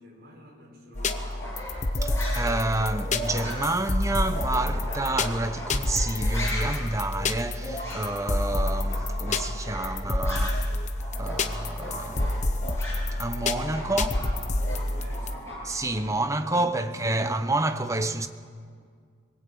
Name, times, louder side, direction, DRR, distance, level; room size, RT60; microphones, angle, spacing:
voice 1, 0.0-1.6 13.6-14.2 14.6-15.7 15.9-17.5, equal, 50° right, 6.3 m, -48 dB
sound 1, 1.0-15.4, left 2 dB, 35° left, 1.0 m, -29 dB
sound 2, 1.0-10.7 11.0-16.0, equal, 15° left, 7.6 m, -38 dB
sound 3, 1.6-11.5, equal, 90° right, 5.1 m, -47 dB
voice 2, 2.0-10.7 11.2-12.4 13.1-14.1 15.7-18.3, right 2 dB, 15° right, 0.9 m, -29 dB
23.5 x 21.0 x 8.6 m
head